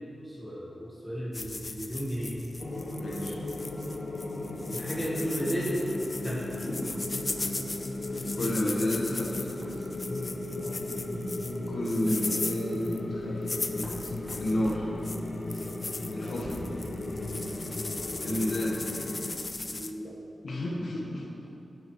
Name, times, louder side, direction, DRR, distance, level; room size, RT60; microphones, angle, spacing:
voice 1, 0.2-2.4 4.7-5.8 6.2-6.6 10.6-10.8 16.2-16.3 17.8-18.0 19.7-20.2, equal, 5° right, -8 dB, 1.4 m, -34 dB
sound 1, 1.3-19.9, left 3 dB, 35° left, 0.4 m, -39 dB
sound 2, 2.6-19.3, left 1 dB, 60° left, 1.1 m, -36 dB
voice 2, 3.0-3.4 8.3-9.5 11.7-13.5 13.7-13.9 14.4-14.9 16.1-16.6 18.2-18.9 20.4-21.3, left 1 dB, 90° left, -3 dB, 1.4 m, -31 dB
sound 3, 6.9-8.3 8.6-9.1 9.6-9.8 10.2-10.4 11.3-11.4 11.8-11.9 12.4-18.3, right 1 dB, 35° right, 1.6 m, -48 dB
11.0 x 7.7 x 3.2 m, 2.7 s
wide cardioid pair, 135°, 0 cm